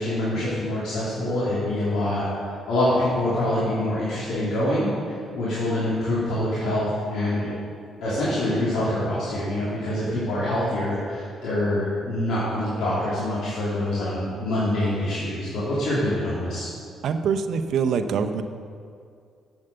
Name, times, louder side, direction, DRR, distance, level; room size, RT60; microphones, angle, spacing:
voice 1, 0.0-2.3 2.7-7.5 8.0-16.7, left 1 dB, 75° left, -9 dB, 2.7 m, -25 dB
voice 2, 17.0-18.4, right 6 dB, 70° right, 8 dB, 0.6 m, -24 dB
7.9 x 7.2 x 6.7 m, 2.3 s
cardioid pair, 90°, 0 cm